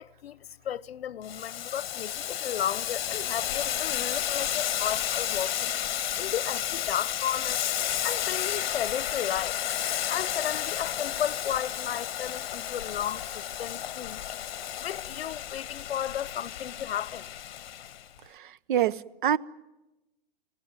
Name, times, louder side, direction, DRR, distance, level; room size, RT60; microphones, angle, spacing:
voice 1, 0.0-5.7 6.2-7.6 8.0-9.6 10.1-14.2 14.8-17.3, left 10 dB, 90° left, 0.8 m, -34 dB
Boiling, 1.2-18.0, left 11 dB, 50° left, 1.6 m, -32 dB
voice 2, 18.3-19.4, right 10 dB, 55° right, 0.8 m, -26 dB
25.0 x 17.5 x 9.7 m
hypercardioid pair, 160°, 30 cm